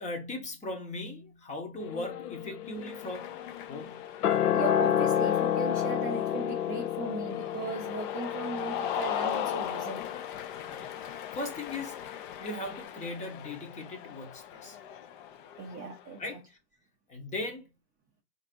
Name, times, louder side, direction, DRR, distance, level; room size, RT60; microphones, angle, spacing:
voice 1, 0.0-3.3 3.7-4.1 10.6-12.0 12.4-14.8 16.2-16.6 17.1-17.7, left 2 dB, 15° left, 0.8 m, -39 dB
sound 1, 1.8-12.2 12.5-12.6, left 10 dB, 80° left, 0.7 m, -31 dB
Cheering, 2.7-16.2, left 9 dB, 35° left, 0.4 m, -39 dB
voice 2, 4.5-10.0 15.6-16.4, right 5 dB, 20° right, 0.5 m, -38 dB
4.1 x 2.7 x 4.2 m
hypercardioid pair, 115°, 46 cm